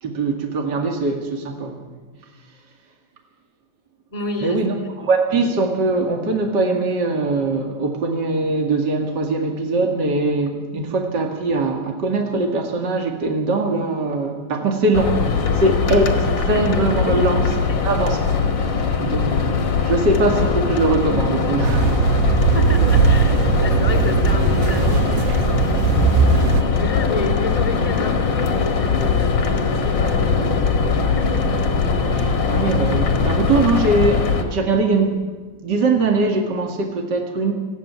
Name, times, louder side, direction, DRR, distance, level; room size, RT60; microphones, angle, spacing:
voice 1, 0.0-1.9 4.4-21.9 32.1-35.2 35.6-37.5, right 3 dB, 45° right, 2 dB, 1.4 m, -21 dB
voice 2, 4.1-4.6 17.0-17.3 17.7-17.9 22.5-25.7 26.5-30.3 30.7-31.5, left 3 dB, 20° left, 4 dB, 1.0 m, -30 dB
sound 1, 14.9-34.4, left 5 dB, 45° left, 1.6 m, -21 dB
sound 2, 21.6-26.6, right 6 dB, 80° right, 2.9 m, -19 dB
20.0 x 15.0 x 9.4 m, 1.3 s
omnidirectional pair, 4.9 m